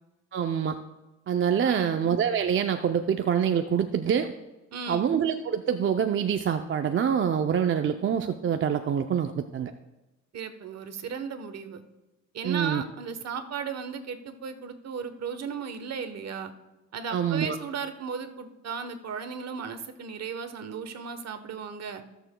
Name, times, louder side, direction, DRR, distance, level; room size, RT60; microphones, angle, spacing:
voice 1, 0.3-0.8 1.3-4.3 4.9-9.7 12.4-12.8 17.1-17.6, right 8 dB, 40° right, 6 dB, 0.5 m, -25 dB
voice 2, 1.6-2.0 4.7-5.1 10.3-11.8 12.3-16.5 16.9-22.0, right 6 dB, 60° right, 9 dB, 1.1 m, -36 dB
19.5 x 6.9 x 2.2 m, 1.0 s
cardioid pair, 90°, 30 cm